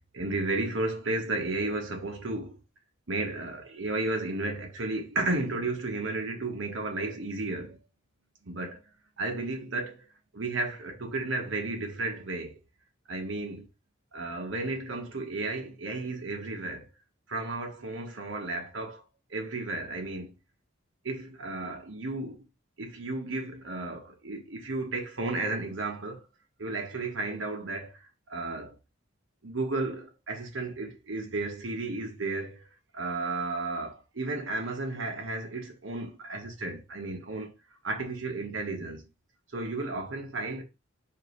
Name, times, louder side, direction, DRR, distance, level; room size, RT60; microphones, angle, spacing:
voice 1, 0.1-2.6 3.1-7.8 8.4-8.8 9.2-10.0 10.3-12.6 13.1-13.7 14.1-16.9 17.3-19.0 19.3-20.3 21.0-22.4 22.8-26.2 26.6-28.0 28.3-28.7 29.4-32.7 32.9-37.5 37.8-39.0 39.5-40.6, right 2 dB, 80° right, 1.1 m, -33 dB
4.5 x 2.7 x 3.2 m
head